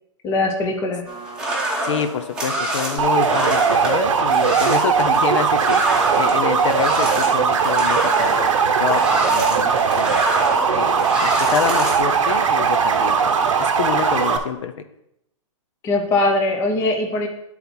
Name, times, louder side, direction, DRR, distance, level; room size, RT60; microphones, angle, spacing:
voice 1, 0.2-1.1 15.8-17.3, left 2 dB, 15° left, 2 dB, 0.7 m, -21 dB
sound 1, 1.1-12.0, right 1 dB, 5° right, 0.9 m, -26 dB
voice 2, 1.8-5.8 6.2-9.7 10.0-10.2 10.7-14.7, left 7 dB, 60° left, 9 dB, 0.6 m, -27 dB
sound 2, 3.0-14.4, right 6 dB, 65° right, 0.8 m, -19 dB
9.7 x 4.0 x 4.3 m, 0.80 s
hypercardioid pair, 160°, 17 cm